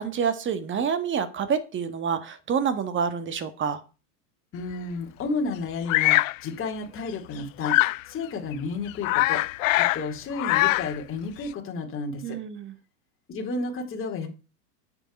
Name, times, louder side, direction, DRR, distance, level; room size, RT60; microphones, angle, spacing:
voice 1, 0.0-3.8 12.2-12.7, right 7 dB, 25° right, 11 dB, 1.6 m, -27 dB
voice 2, 4.5-7.8 8.1-9.4 9.8-12.4 13.3-14.3, left 3 dB, 25° left, 2 dB, 2.7 m, -32 dB
Bird vocalization bird call bird song, 5.9-6.4 7.6-8.0 8.5-8.6 8.9-10.1 10.3-11.0, left 19 dB, 55° left, 0.5 m, -22 dB
9.0 x 7.1 x 5.5 m, 0.33 s
hypercardioid pair, 105°, 48 cm